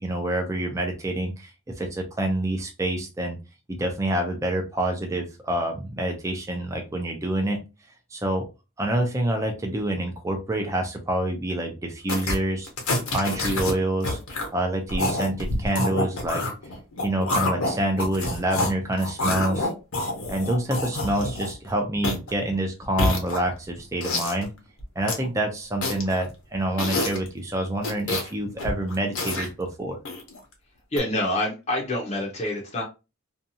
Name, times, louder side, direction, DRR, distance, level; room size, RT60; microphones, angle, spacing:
voice 1, 0.0-3.4 3.7-7.6 8.1-8.5 8.8-12.7 13.1-14.2 14.5-16.4 17.0-19.7 20.3-24.5 25.0-30.0, right 1 dB, 15° right, 3 dB, 0.4 m, -27 dB
sound 1, 12.1-12.4 12.6-13.7 14.0-14.5 14.9-18.7 19.0-21.7 22.0-22.3 22.8-23.6 24.0-24.4 24.8-25.3 25.8-26.2 26.8-27.3 27.8-28.3 28.6-29.5 30.1-30.4 31.0-31.1, left 2 dB, 80° left, 0.9 m, -27 dB
voice 2, 30.9-32.8, left 1 dB, 30° left, -2 dB, 0.6 m, -26 dB
2.7 x 2.3 x 2.7 m, 0.28 s
head